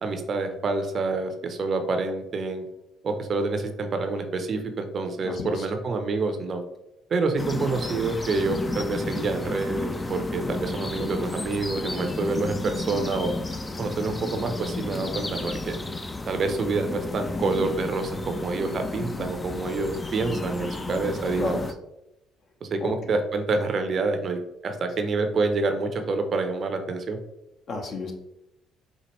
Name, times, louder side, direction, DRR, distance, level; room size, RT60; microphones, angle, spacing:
voice 1, 0.0-2.6 3.0-6.6 7.1-13.3 13.8-15.8 16.3-21.7 22.6-27.2, right 3 dB, 50° right, 6 dB, 0.5 m, -27 dB
voice 2, 5.2-5.7 21.4-21.6 22.8-23.1 27.7-28.1, left 3 dB, 55° left, 3 dB, 0.8 m, -32 dB
sound 1, 7.4-21.7, left 2 dB, 25° left, 0.4 m, -32 dB
4.4 x 2.4 x 2.9 m, 0.88 s
hypercardioid pair, 55°, 0 cm